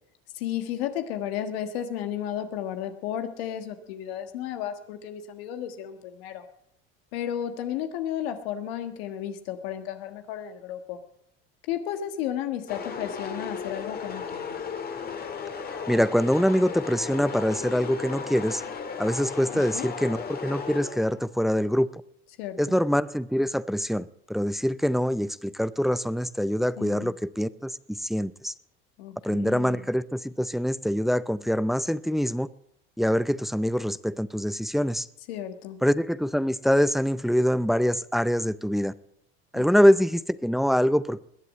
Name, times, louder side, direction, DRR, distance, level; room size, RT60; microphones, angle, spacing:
voice 1, 0.3-6.4 7.1-11.0 11.7-14.6 19.5-19.9 22.4-22.8 26.8-27.1 29.0-29.8 35.3-35.8 39.5-40.0, left 10 dB, 80° left, 1.6 m, -33 dB
sound 1, 12.7-21.3, left 6 dB, 30° left, 2.1 m, -35 dB
voice 2, 15.9-18.6 19.0-22.0 22.6-28.5 29.2-32.5 33.0-35.1 35.8-38.9 39.5-41.2, equal, ahead, 0.5 m, -24 dB
21.0 x 8.2 x 7.5 m
supercardioid pair, 100°, 30 cm